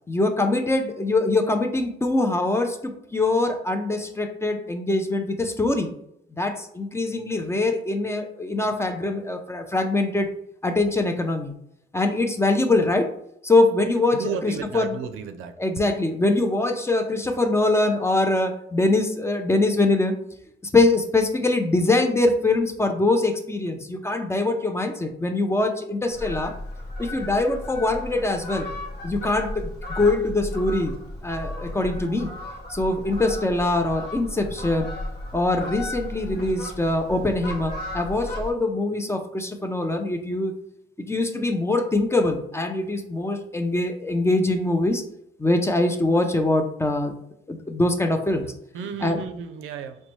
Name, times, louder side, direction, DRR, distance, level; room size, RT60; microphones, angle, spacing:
voice 1, 0.1-5.9 6.4-10.3 10.6-11.5 11.9-13.1 13.4-15.0 15.6-20.1 20.7-26.5 27.0-28.7 29.0-30.9 31.2-32.3 32.7-34.9 35.3-40.5 41.0-45.0 45.4-47.1 47.5-48.5 49.0-49.2, left 2 dB, 15° left, 6 dB, 0.4 m, -23 dB
voice 2, 14.1-15.5 48.7-50.0, right 7 dB, 90° right, 7 dB, 0.4 m, -33 dB
Fowl, 26.1-38.5, left 1 dB, 55° left, 0.9 m, -35 dB
4.0 x 2.2 x 3.0 m, 0.75 s
cardioid pair, 90°, 20 cm